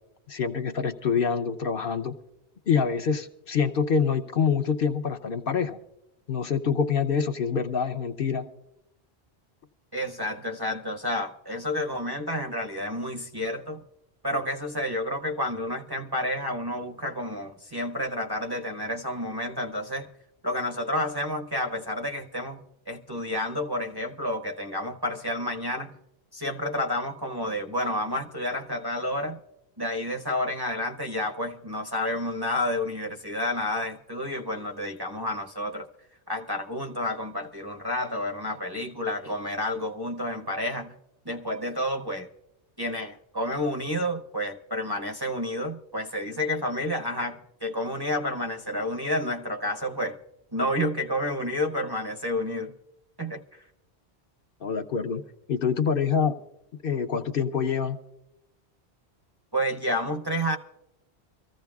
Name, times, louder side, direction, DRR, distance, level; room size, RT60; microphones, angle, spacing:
voice 1, 0.3-2.2 2.7-5.8 6.3-8.5 54.6-55.2 55.5-56.3 56.8-58.0, left 6 dB, 60° left, 0.9 m, -26 dB
voice 2, 9.9-13.8 14.2-20.1 20.4-26.0 26.3-29.4 29.8-35.9 36.3-40.9 41.3-42.3 42.8-50.2 50.5-52.7 53.2-53.6 59.5-60.6, left 1 dB, 25° right, 0.6 m, -30 dB
24.5 x 14.5 x 2.3 m
omnidirectional pair, 1.1 m